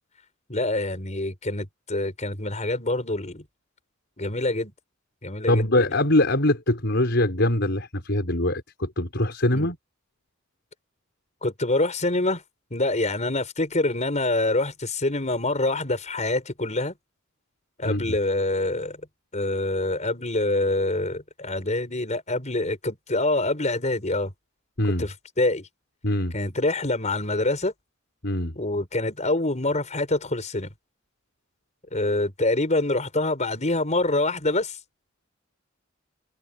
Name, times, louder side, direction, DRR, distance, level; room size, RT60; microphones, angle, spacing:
voice 1, 0.5-3.4 4.2-4.7 5.2-5.7 9.5-9.7 11.4-12.4 12.7-16.9 17.8-19.0 19.3-24.3 25.0-25.7 26.3-27.7 28.6-30.7 31.9-34.8, left 2 dB, 35° left, 5.4 m, -25 dB
voice 2, 5.5-9.8 17.8-18.2 24.8-25.1 26.0-26.4 28.2-28.5, left 1 dB, 60° left, 4.9 m, -23 dB
head